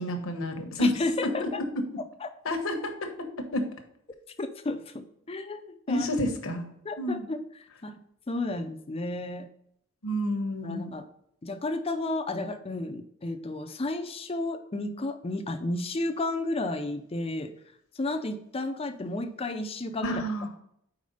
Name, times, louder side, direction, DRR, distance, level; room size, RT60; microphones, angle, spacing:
voice 1, 0.0-1.0 1.2-1.5 1.7-1.8 2.4-3.7 5.9-6.6 7.0-7.3 10.0-10.9 20.0-20.5, left 1 dB, 70° left, 5 dB, 1.0 m, -29 dB
voice 2, 0.8-1.6 2.2-2.3 4.4-6.1 6.8-7.4 7.8-8.0 8.3-9.5 10.6-11.0 11.4-17.5 18.0-20.2, left 2 dB, 25° left, 8 dB, 0.5 m, -32 dB
5.0 x 4.3 x 5.4 m, 0.73 s
head